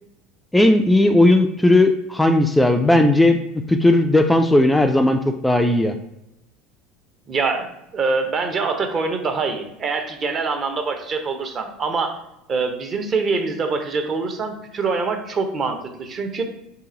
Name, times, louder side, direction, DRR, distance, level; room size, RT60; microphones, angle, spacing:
voice 1, 0.5-3.4 3.7-5.9, left 1 dB, 5° left, 5 dB, 0.3 m, -16 dB
voice 2, 7.3-12.2 12.5-16.4, right 4 dB, 40° right, 6 dB, 0.7 m, -24 dB
3.3 x 2.9 x 3.7 m, 0.83 s
hypercardioid pair, 90°, 0 cm